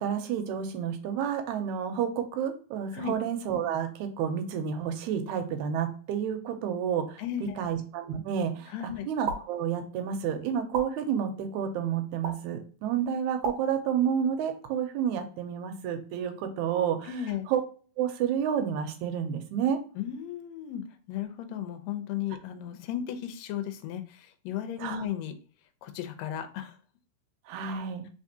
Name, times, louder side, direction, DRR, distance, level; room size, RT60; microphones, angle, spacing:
voice 1, 0.0-8.7 9.1-17.1 17.5-17.6 18.0-19.8 24.8-25.0 27.5-28.1, right 8 dB, 85° right, 6 dB, 2.0 m, -30 dB
voice 2, 7.2-7.7 8.7-9.1 17.1-17.5 20.0-25.3 25.8-26.8, left 10 dB, 80° left, 8 dB, 1.8 m, -35 dB
sound 1, 9.2-9.4 10.7-10.9 12.2-12.4 13.4-13.6, right 4 dB, 70° right, 1.4 m, -30 dB
4.2 x 3.5 x 2.7 m, 0.39 s
omnidirectional pair, 3.3 m